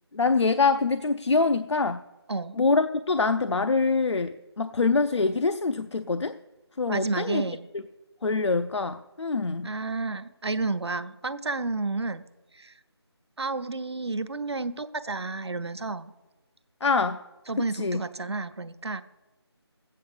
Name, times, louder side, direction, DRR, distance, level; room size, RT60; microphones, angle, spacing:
voice 1, 0.1-2.0 2.5-6.4 6.8-7.4 7.7-7.8 8.2-9.7 16.8-17.2 17.6-18.0, left 4 dB, 85° left, 10 dB, 0.6 m, -25 dB
voice 2, 6.9-7.7 9.6-12.2 12.5-12.7 13.4-16.1 17.5-19.0, right 3 dB, 70° right, 11 dB, 0.9 m, -31 dB
13.5 x 8.5 x 6.7 m, 1.1 s
figure-of-eight pair, 170°, 14 cm